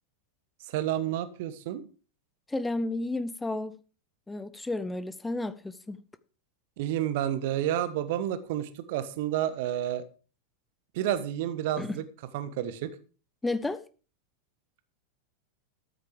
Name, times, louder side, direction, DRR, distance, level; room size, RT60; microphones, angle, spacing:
voice 1, 0.7-1.8 6.8-10.0 10.9-12.0 12.3-12.9, right 11 dB, 50° right, 1.4 m, -30 dB
voice 2, 2.5-3.8 4.3-6.0 11.8-12.0 13.4-13.8, left 2 dB, 10° left, 0.7 m, -32 dB
13.5 x 9.1 x 5.0 m
figure-of-eight pair, 90°, 0 cm